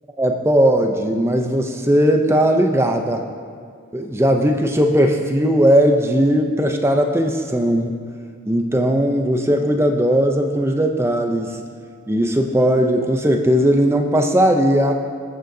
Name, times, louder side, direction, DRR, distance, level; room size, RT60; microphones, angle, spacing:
voice 1, 0.2-3.2 3.9-7.9 8.5-11.6 12.1-14.9, equal, 10° right, 4 dB, 0.5 m, -18 dB
19.5 x 6.5 x 2.7 m, 2.1 s
head